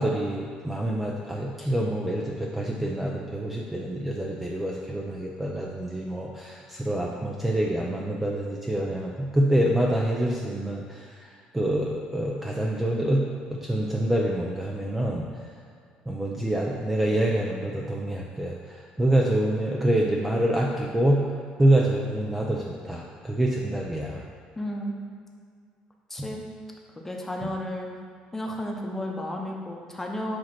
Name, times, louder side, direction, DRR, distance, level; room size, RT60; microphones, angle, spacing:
voice 1, 0.0-13.2 13.5-15.3 16.1-21.3 21.6-24.2 26.2-26.3 27.4-27.5, right 1 dB, 10° right, -2 dB, 0.5 m, -26 dB
voice 2, 24.6-24.9 26.1-26.4 27.0-27.9 28.3-30.4, left 1 dB, 10° left, 0 dB, 0.9 m, -32 dB
7.5 x 2.9 x 5.9 m, 2.2 s
cardioid pair, 115°, 3 cm